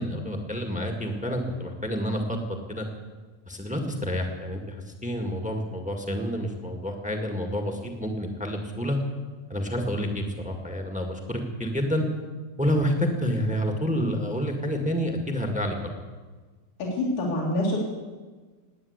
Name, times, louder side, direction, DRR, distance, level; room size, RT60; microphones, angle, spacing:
voice 1, 0.0-2.4 2.7-2.8 3.4-4.8 5.0-9.0 9.5-12.0 12.6-16.0, equal, 5° right, 3 dB, 0.8 m, -28 dB
voice 2, 16.8-17.8, left 1 dB, 85° left, -5 dB, 3.8 m, -26 dB
19.0 x 9.3 x 8.1 m, 1.4 s
omnidirectional pair, 3.4 m